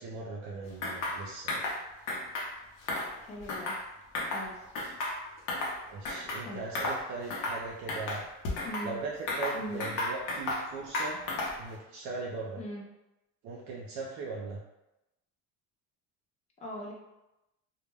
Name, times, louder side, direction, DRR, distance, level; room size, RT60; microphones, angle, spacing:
voice 1, 0.0-1.6 5.8-8.3 8.8-11.2 11.6-12.6 13.4-14.6, right 3 dB, 55° right, -3 dB, 0.4 m, -39 dB
sound 1, 0.8-1.2 1.5-1.8 2.1-2.5 2.8-3.8 4.1-4.5 4.8-5.8 6.0-6.4 6.7-7.0 7.3-7.6 7.9-8.9 9.3-10.6 10.9-11.6, left 2 dB, 60° left, 0.7 m, -33 dB
voice 2, 3.2-3.8 4.3-4.7 6.4-6.6 8.6-9.0 9.5-9.9 12.6-12.8 16.6-16.9, equal, 20° left, -2 dB, 0.4 m, -40 dB
2.1 x 2.1 x 3.2 m, 0.94 s
cardioid pair, 160°, 34 cm